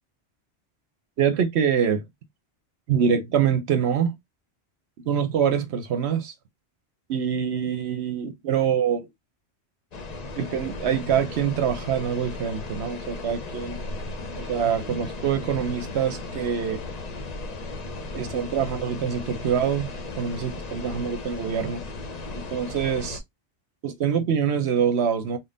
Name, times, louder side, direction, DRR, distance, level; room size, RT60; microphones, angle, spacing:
voice 1, 1.2-2.0 2.9-4.1 5.1-6.3 7.1-9.1 10.3-13.8 14.4-16.8 18.1-19.9 20.2-21.8 22.3-23.2 23.8-25.4, right 8 dB, 75° right, 0.9 m, -25 dB
sound 1, 9.9-23.2, left 3 dB, 45° left, 0.6 m, -36 dB
3.7 x 2.2 x 3.7 m
omnidirectional pair, 1.1 m